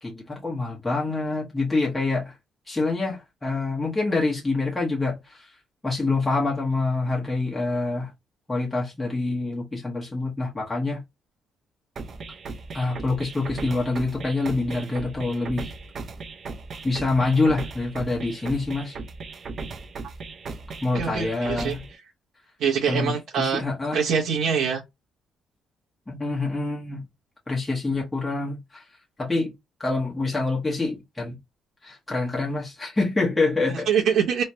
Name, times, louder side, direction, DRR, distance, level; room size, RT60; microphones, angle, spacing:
voice 1, 0.0-2.4 2.7-5.5 5.8-8.1 8.5-11.0 12.7-15.7 16.8-19.0 20.8-21.8 22.9-24.0 26.1-27.0 27.5-28.8 29.2-29.5 29.8-31.4 31.8-33.9, left 3 dB, 15° left, 1.1 m, -26 dB
sound 1, 12.0-22.0, right 4 dB, 50° right, 0.6 m, -37 dB
voice 2, 20.9-21.7 22.6-23.6 23.9-24.8 33.7-34.4, right 7 dB, 85° right, 0.8 m, -24 dB
3.2 x 2.2 x 2.7 m
cardioid pair, 90°, 0 cm